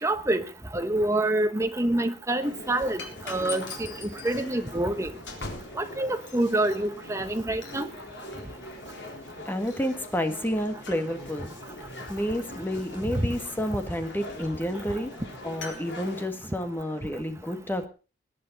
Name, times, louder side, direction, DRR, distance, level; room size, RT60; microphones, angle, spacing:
voice 1, 0.0-0.4 0.7-3.0 3.3-3.7 4.2-5.1 5.8-7.9 13.1-13.3, right 1 dB, 15° right, 8 dB, 1.2 m, -26 dB
sound 1, 2.4-16.2, left 2 dB, 75° left, 4.1 m, -41 dB
voice 2, 9.5-11.5 12.1-15.1 15.4-17.9, equal, 10° left, 7 dB, 1.8 m, -30 dB
20.5 x 10.0 x 4.1 m, 0.34 s
head